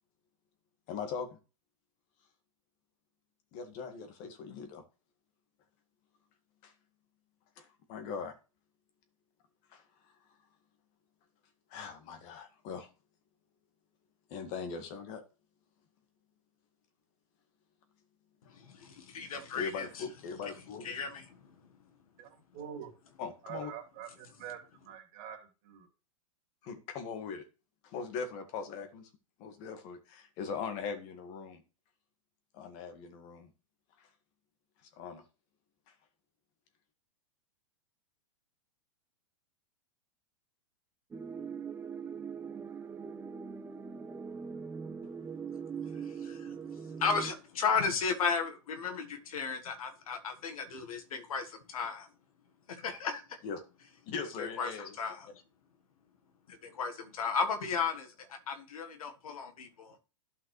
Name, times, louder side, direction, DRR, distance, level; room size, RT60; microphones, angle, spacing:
voice 1, 0.9-1.3 3.5-4.8 6.6-6.7 7.6-8.3 9.7-9.8 11.7-12.9 14.3-15.2 18.5-18.6 19.5-20.8 23.2-23.7 26.6-27.5 27.8-29.1 29.4-31.6 32.5-33.5 34.0-34.1 35.0-35.2 53.4-53.6 54.1-54.9, left 5 dB, 45° left, 1.9 m, -40 dB
voice 2, 18.5-20.1 20.4-20.5 20.8-21.7 45.8-52.1 52.7-53.4 54.4-55.4 56.5-60.0, left 5 dB, 80° left, 1.6 m, -35 dB
voice 3, 22.2-22.9 23.4-25.9, right 9 dB, 45° right, 2.8 m, -45 dB
sound 1, 41.1-47.3, right 6 dB, 10° right, 0.5 m, -41 dB
12.0 x 5.6 x 3.3 m
hypercardioid pair, 125°, 18 cm